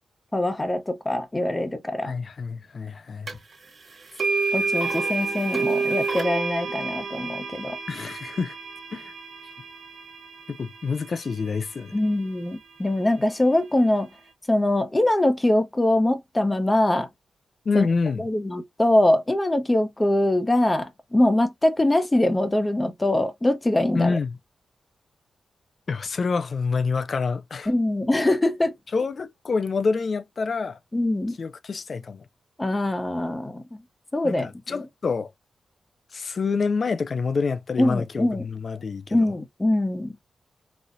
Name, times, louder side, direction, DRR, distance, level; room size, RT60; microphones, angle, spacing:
voice 1, 0.3-2.1 4.5-7.8 11.9-14.1 14.5-17.1 17.7-17.9 18.2-24.2 27.7-28.8 30.9-31.3 32.6-33.8 34.1-34.8 37.8-38.4 39.1-40.1, left 1 dB, 20° left, 0.9 m, -23 dB
voice 2, 2.0-3.3 7.9-8.6 8.9-9.1 10.5-11.9 17.7-18.2 23.9-24.4 25.9-27.7 28.9-30.8 31.4-32.3 34.2-35.3 36.1-39.3, left 4 dB, 55° left, 0.5 m, -27 dB
sound 1, 3.3-3.4 4.2-12.2, right 4 dB, 50° right, 1.1 m, -29 dB
4.1 x 2.4 x 2.5 m
cardioid pair, 80°, 0 cm